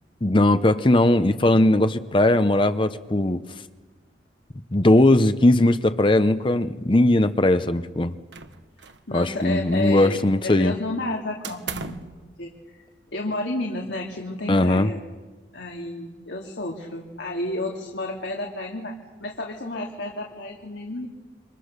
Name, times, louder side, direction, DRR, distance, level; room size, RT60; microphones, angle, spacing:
voice 1, 0.2-3.4 4.7-8.1 9.1-10.7 14.5-14.9, left 1 dB, 30° left, 0.8 m, -19 dB
sound 1, 8.3-9.1 9.4-10.3 11.4-12.2, right 5 dB, 85° right, 1.5 m, -37 dB
voice 2, 9.1-12.9 13.1-15.0 15.5-19.0 19.2-21.1, left 2 dB, 80° left, 2.8 m, -31 dB
29.5 x 25.5 x 6.7 m
head